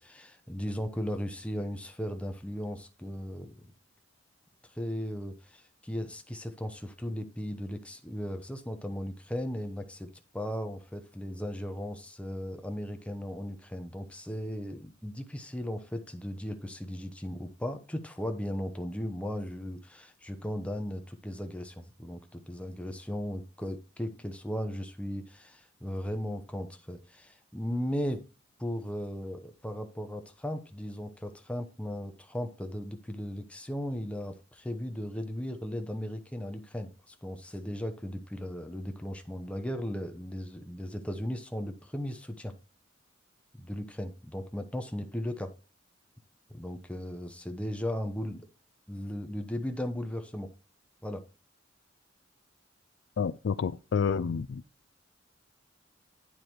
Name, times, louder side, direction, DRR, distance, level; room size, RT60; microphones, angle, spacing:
voice 1, 0.0-3.6 4.8-28.2 28.6-42.6 43.6-45.5 46.5-48.4 48.9-50.5 51.0-51.2, equal, 5° left, 0.9 m, -36 dB
voice 2, 53.2-54.6, left 6 dB, 65° left, 0.4 m, -29 dB
9.2 x 4.8 x 4.4 m
head